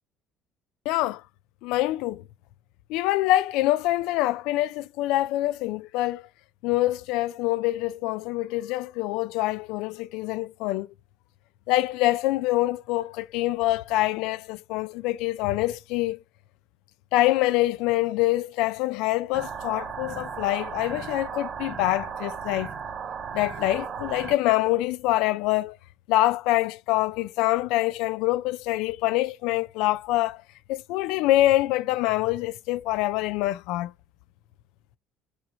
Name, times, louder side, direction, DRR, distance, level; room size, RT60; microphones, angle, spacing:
voice 1, 0.9-1.2 1.6-2.2 2.9-6.2 6.6-10.9 11.7-16.2 17.1-22.7 23.3-25.8 26.1-30.4 30.7-33.9, left 16 dB, 80° left, 0.3 m, -25 dB
sound 1, 19.3-24.3, right 6 dB, 35° right, 0.3 m, -36 dB
3.1 x 3.0 x 3.9 m
cardioid pair, 175°, 0 cm